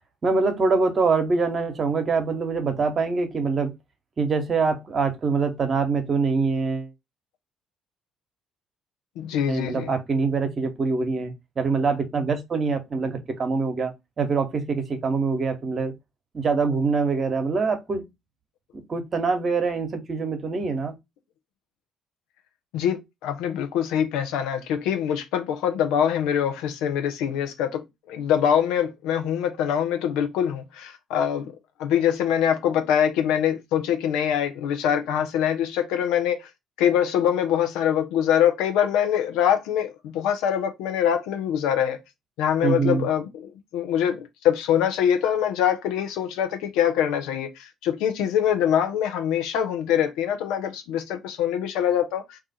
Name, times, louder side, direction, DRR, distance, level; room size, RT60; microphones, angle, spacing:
voice 1, 0.2-3.7 4.2-6.9 9.5-15.9 16.3-18.0 18.7-20.9 42.6-43.0, right 4 dB, 45° right, 0.9 m, -24 dB
voice 2, 9.2-9.9 22.7-31.5 31.8-36.5 36.8-42.0 42.4-52.4, left 9 dB, 70° left, 0.6 m, -24 dB
2.4 x 2.4 x 4.1 m
hypercardioid pair, 50°, 0 cm